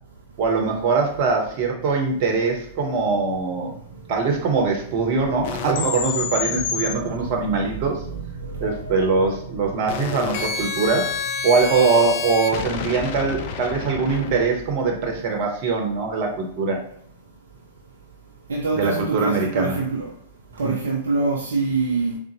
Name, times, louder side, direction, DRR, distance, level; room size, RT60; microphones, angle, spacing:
voice 1, 0.4-3.7 4.1-8.0 8.6-11.1 11.4-16.8 18.7-19.8 20.6-20.7, right 4 dB, 45° right, 0.8 m, -22 dB
sound 1, 5.4-6.9 8.6-14.5, left 6 dB, 50° left, 0.3 m, -29 dB
voice 2, 18.5-20.1 20.6-22.2, right 3 dB, 70° right, 0.4 m, -24 dB
3.8 x 2.0 x 2.8 m
figure-of-eight pair, 100°, 0 cm